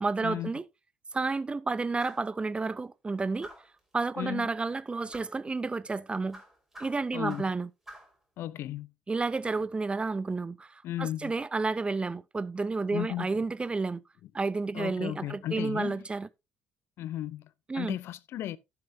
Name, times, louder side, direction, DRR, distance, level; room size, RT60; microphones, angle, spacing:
voice 1, 0.0-0.6 1.1-3.5 3.9-6.4 6.8-7.7 9.1-14.0 14.3-16.3 17.7-18.0, right 3 dB, 20° right, 0.5 m, -31 dB
sound 1, 2.0-2.3 3.4-3.8 5.1-5.4 6.3-7.6 7.9-8.2, right 1 dB, 5° right, 4.2 m, -48 dB
voice 2, 4.2-4.5 7.1-7.4 8.4-8.9 10.8-11.3 12.9-13.3 14.7-16.0 17.0-17.5 17.8-18.6, left 13 dB, 55° left, 0.5 m, -35 dB
15.5 x 5.8 x 2.6 m
figure-of-eight pair, 50°, 5 cm